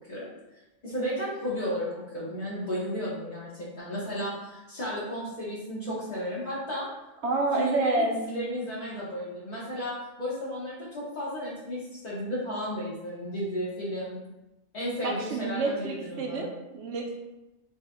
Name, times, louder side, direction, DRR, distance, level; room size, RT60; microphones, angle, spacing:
voice 1, 0.8-6.9 7.5-14.2 14.7-16.5, equal, 40° left, -10 dB, 0.7 m, -33 dB
voice 2, 7.2-8.1 15.0-17.2, right 2 dB, 65° right, 1 dB, 0.7 m, -28 dB
2.7 x 2.4 x 3.4 m, 0.99 s
omnidirectional pair, 1.4 m